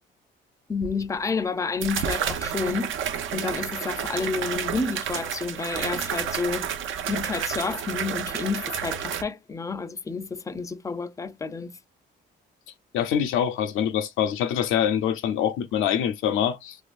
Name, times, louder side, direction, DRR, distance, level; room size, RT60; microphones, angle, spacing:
voice 1, 0.7-2.9 3.3-6.7 7.1-11.7, left 4 dB, 15° left, 0.5 m, -30 dB
sound 1, 0.8-0.9 1.8-9.2, right 8 dB, 80° right, 0.7 m, -30 dB
voice 2, 12.9-16.8, left 9 dB, 85° left, 0.6 m, -24 dB
3.5 x 3.0 x 2.5 m
cardioid pair, 90°, 20 cm